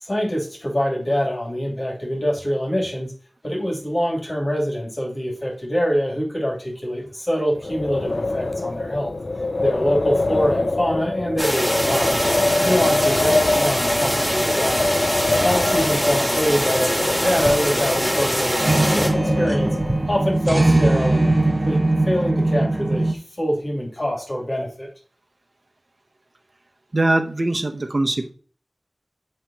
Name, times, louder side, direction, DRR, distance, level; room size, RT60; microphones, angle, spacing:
voice 1, 0.0-3.1 3.4-9.1 9.6-12.2 12.6-14.9 15.4-19.8 20.1-24.9, equal, 45° left, -1 dB, 2.6 m, -25 dB
Wind, 7.6-20.2, left 2 dB, 80° left, 0.5 m, -24 dB
sound 1, 11.4-19.1, equal, ahead, 2.1 m, -23 dB
sound 2, 17.3-17.7 18.1-18.2 18.6-23.1, right 2 dB, 35° right, 0.7 m, -20 dB
voice 2, 26.9-28.3, right 2 dB, 65° right, 6 dB, 0.9 m, -21 dB
7.7 x 3.3 x 4.1 m, 0.40 s
wide cardioid pair, 50°, 0 cm